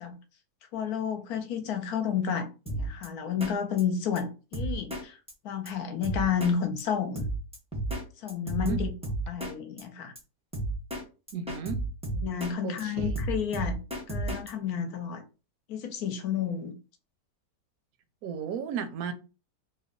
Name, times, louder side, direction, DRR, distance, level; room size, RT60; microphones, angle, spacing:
voice 1, 0.7-5.2 5.4-7.3 8.2-8.9 9.3-10.1 12.1-13.8 14.1-15.2 15.7-16.7, left 7 dB, 70° left, 1.1 m, -31 dB
Drum kit, 2.7-3.1 3.4-3.5 3.8-3.9 4.2-4.3 4.5-5.0 5.3-5.4 5.7-5.8 6.0-6.5 6.8-6.9 7.2-8.0 8.3-9.5 9.8-9.9 10.2-10.3 10.5-11.0 11.3-12.5 12.8-14.5, right 2 dB, 10° right, 0.3 m, -32 dB
voice 2, 11.3-11.8 12.6-13.1 18.2-19.1, right 7 dB, 70° right, 1.0 m, -34 dB
3.1 x 2.2 x 3.6 m
omnidirectional pair, 1.8 m